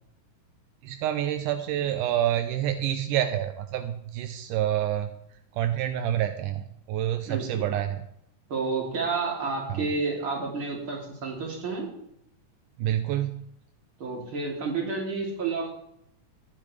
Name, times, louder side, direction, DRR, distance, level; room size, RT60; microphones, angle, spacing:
voice 1, 0.8-5.1 5.5-8.0 9.7-9.9 12.8-13.4, right 11 dB, 85° right, 8 dB, 2.2 m, -28 dB
voice 2, 7.3-7.6 8.5-11.9 14.0-15.7, right 4 dB, 40° right, -2 dB, 3.7 m, -30 dB
15.0 x 10.0 x 3.4 m, 0.75 s
omnidirectional pair, 3.8 m